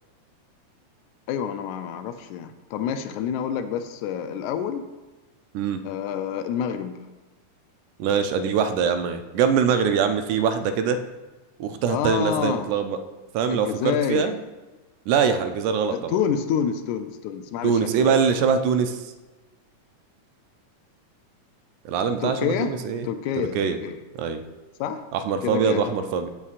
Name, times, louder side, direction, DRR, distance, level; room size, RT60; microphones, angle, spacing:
voice 1, 1.3-4.9 5.8-7.0 11.9-12.7 13.5-14.3 15.9-18.2 22.2-22.7 23.0-24.0 24.8-25.0 25.4-26.0, left 8 dB, 80° left, 9 dB, 1.9 m, -28 dB
voice 2, 8.0-11.0 11.6-13.0 13.3-14.4 15.1-16.2 17.6-19.0 21.9-23.1 23.4-23.8 24.2-24.4 25.1-26.3, right 6 dB, 80° right, 8 dB, 2.0 m, -23 dB
14.5 x 5.5 x 2.5 m, 1.2 s
omnidirectional pair, 3.5 m